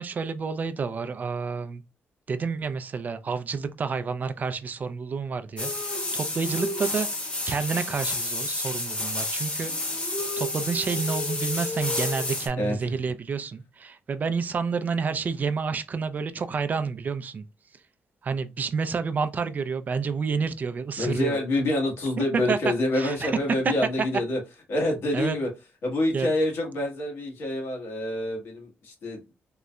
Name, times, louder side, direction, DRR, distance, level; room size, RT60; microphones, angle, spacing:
voice 1, 0.0-1.8 2.3-7.1 7.4-9.7 10.4-17.4 18.2-21.6 22.5-22.6 22.9-23.3 25.1-25.4 26.1-26.3, right 5 dB, 40° right, 0.3 m, -29 dB
sound 1, 5.6-12.5, left 2 dB, 25° left, 0.9 m, -30 dB
voice 2, 21.0-24.4 24.7-25.5 25.8-29.2, left 1 dB, 75° left, 1.3 m, -27 dB
3.7 x 2.1 x 2.3 m
cardioid pair, 120°, 4 cm